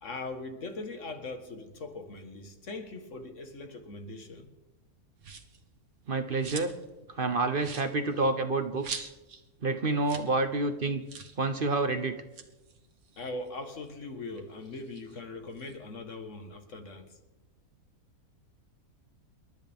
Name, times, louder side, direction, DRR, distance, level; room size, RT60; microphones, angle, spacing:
voice 1, 0.0-4.5 13.2-17.2, left 2 dB, 55° left, 1.8 m, -40 dB
sound 1, 5.2-5.6 6.0-6.9 7.2-7.3 7.6-9.4 9.7-9.8 10.0-10.3 10.6-10.7 11.1-11.4 12.1-13.9 14.3-15.8, right 5 dB, 75° right, 1.7 m, -44 dB
voice 2, 6.1-6.8 7.1-9.1 9.6-11.0 11.4-12.1, right 3 dB, 45° right, 0.9 m, -28 dB
28.0 x 12.5 x 3.6 m
omnidirectional pair, 1.5 m